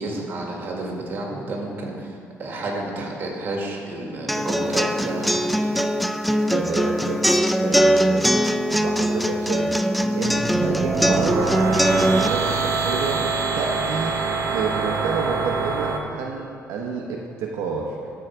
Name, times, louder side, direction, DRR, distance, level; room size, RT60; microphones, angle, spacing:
voice 1, 0.0-5.8, right 2 dB, 45° right, -1 dB, 1.9 m, -30 dB
sound 1, 4.3-12.3, equal, ahead, 0.3 m, -21 dB
voice 2, 6.5-9.8 10.1-11.5 11.8-13.3 13.6-14.2 14.5-18.0, right 5 dB, 90° right, -1 dB, 0.9 m, -29 dB
sound 2, 10.3-16.0, right 4 dB, 65° right, 0.9 m, -25 dB
13.0 x 4.8 x 4.5 m, 2.4 s
cardioid pair, 115°, 5 cm